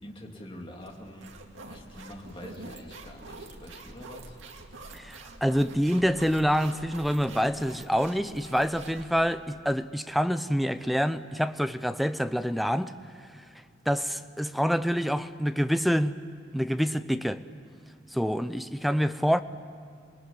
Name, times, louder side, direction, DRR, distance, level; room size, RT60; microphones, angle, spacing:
voice 1, 0.0-1.3 1.7-4.4, left 1 dB, 25° left, 2.7 m, -45 dB
sound 1, 0.8-9.6, right 2 dB, 80° right, 2.2 m, -46 dB
voice 2, 4.9-12.9 13.9-16.2 16.5-17.4 18.1-19.4, equal, ahead, 0.6 m, -26 dB
26.5 x 21.0 x 9.7 m
head